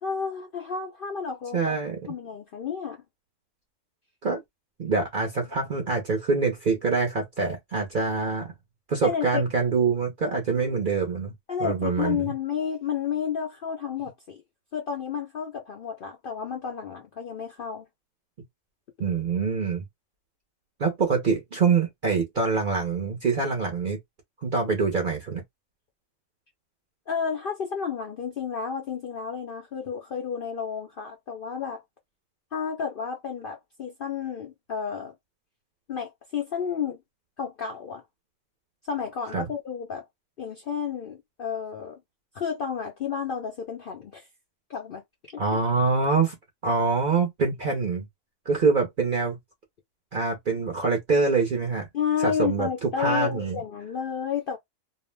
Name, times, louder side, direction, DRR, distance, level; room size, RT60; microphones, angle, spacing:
voice 1, 0.0-1.8 2.1-3.0 9.0-9.4 11.5-14.4 14.7-17.9 27.1-31.8 32.5-35.1 35.9-37.0 37.4-38.0 38.9-40.0 40.4-42.0 42.3-44.3 44.7-45.0 45.3-45.4 51.9-54.6, left 7 dB, 65° left, 0.5 m, -31 dB
voice 2, 1.5-2.0 4.2-4.4 4.8-8.5 8.9-11.3 11.6-12.2 19.0-19.8 20.8-24.0 24.4-25.4 39.3-39.4 45.4-46.4 46.6-48.1 48.5-49.4 50.1-51.9 52.2-53.6, right 4 dB, 50° right, 0.6 m, -25 dB
2.4 x 2.0 x 3.2 m
omnidirectional pair, 1.5 m